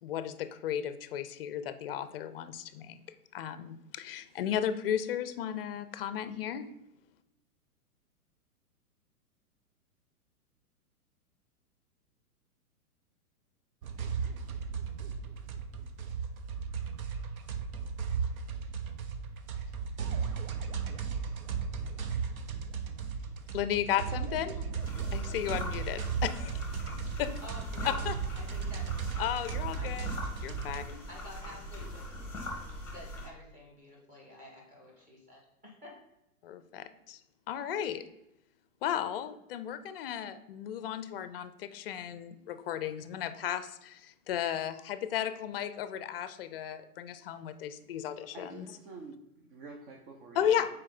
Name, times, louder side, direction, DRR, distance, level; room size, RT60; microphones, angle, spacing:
voice 1, 0.0-3.0 3.3-6.7 23.5-24.6 25.1-26.5 27.2-27.3 28.0-28.2 29.2-30.1 30.4-31.0 36.4-37.2 37.5-38.0 38.8-48.7 50.4-50.7, left 10 dB, 40° left, 12 dB, 0.5 m, -34 dB
sound 1, 13.8-30.8, right 6 dB, 65° right, 0.9 m, -36 dB
sound 2, 24.8-33.3, left 1 dB, 5° left, 1.3 m, -41 dB
voice 2, 27.4-28.0 28.3-30.1 31.1-32.1 32.8-36.0, left 1 dB, 15° right, -3 dB, 2.2 m, -50 dB
voice 3, 48.3-50.6, right 3 dB, 35° right, 1 dB, 0.8 m, -48 dB
6.2 x 4.4 x 4.0 m, 0.88 s
hypercardioid pair, 135°, 45 cm